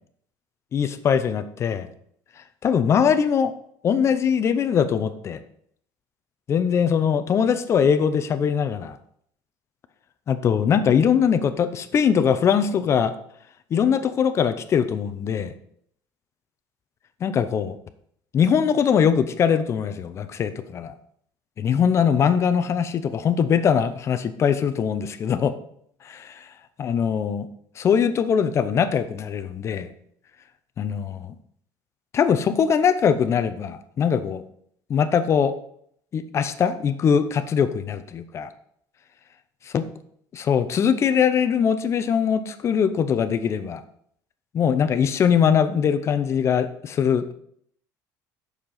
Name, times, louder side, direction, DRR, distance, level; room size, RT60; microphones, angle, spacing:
voice 1, 0.7-1.9 2.6-3.5 3.8-5.4 6.5-9.0 10.3-13.1 13.7-15.5 17.2-17.8 18.3-20.9 21.6-25.5 26.0-26.4 26.8-27.5 27.8-29.9 30.8-31.3 32.1-34.4 34.9-35.5 36.1-38.5 39.7-39.9 40.3-43.8 44.5-47.3, left 7 dB, 35° left, 11 dB, 0.7 m, -21 dB
7.8 x 6.7 x 5.5 m, 0.67 s
cardioid pair, 135°, 8 cm